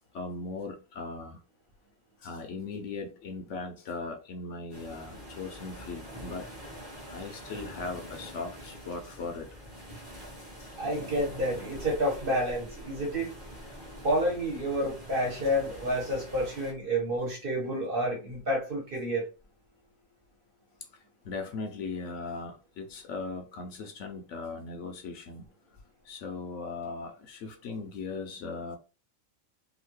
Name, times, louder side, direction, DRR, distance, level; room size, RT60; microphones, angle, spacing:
voice 1, 0.1-1.4 2.2-6.5 7.1-9.5 21.2-25.4 26.1-28.8, left 4 dB, 65° left, 0.9 m, -38 dB
sound 1, 4.7-16.7, equal, 20° right, 1.0 m, -45 dB
voice 2, 10.8-19.3, equal, 45° right, 1.3 m, -30 dB
2.8 x 2.6 x 3.1 m
omnidirectional pair, 1.4 m